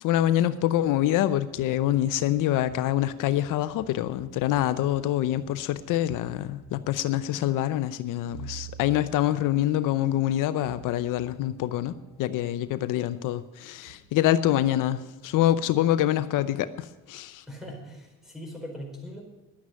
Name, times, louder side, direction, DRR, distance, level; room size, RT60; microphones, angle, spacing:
voice 1, 0.0-17.4, left 13 dB, 85° left, 0.7 m, -25 dB
sound 1, 1.5-12.9 13.6-16.0, right 5 dB, 80° right, 7.1 m, -50 dB
voice 2, 17.5-19.2, equal, ahead, 4.7 m, -40 dB
11.5 x 9.6 x 9.4 m
cardioid pair, 115°, 31 cm